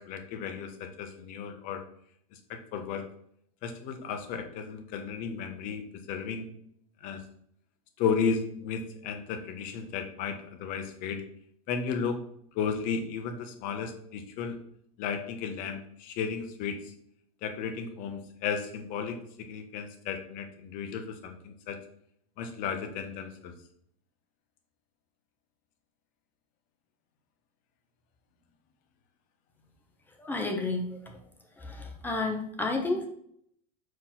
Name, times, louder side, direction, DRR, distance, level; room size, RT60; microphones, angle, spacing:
voice 1, 0.0-1.8 2.5-3.0 3.6-6.5 7.0-7.2 8.0-11.2 11.7-12.2 12.5-14.6 15.0-16.8 17.4-19.2 19.5-21.8 22.4-23.5, left 6 dB, 45° left, 6 dB, 1.2 m, -34 dB
voice 2, 30.2-31.1 31.6-33.1, left 3 dB, 10° left, 2 dB, 1.0 m, -31 dB
4.8 x 4.2 x 5.8 m, 0.67 s
supercardioid pair, 145°, 20 cm